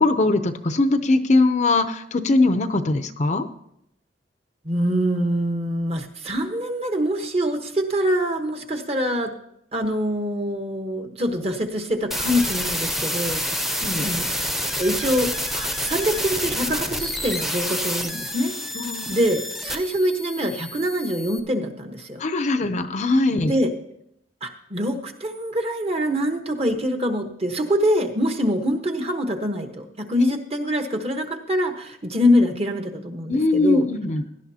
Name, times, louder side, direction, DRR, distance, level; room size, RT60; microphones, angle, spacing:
voice 1, 0.0-3.5 13.8-14.1 18.7-19.1 22.2-23.5 33.3-34.2, left 2 dB, 40° left, 10 dB, 0.6 m, -21 dB
voice 2, 4.6-9.3 9.7-14.3 14.8-15.3 15.5-18.5 19.1-22.2 23.4-23.7 24.4-33.9, equal, 35° right, 5 dB, 1.2 m, -24 dB
sound 1, 12.1-21.4, equal, ahead, 0.8 m, -28 dB
17.0 x 11.5 x 2.8 m, 0.75 s
head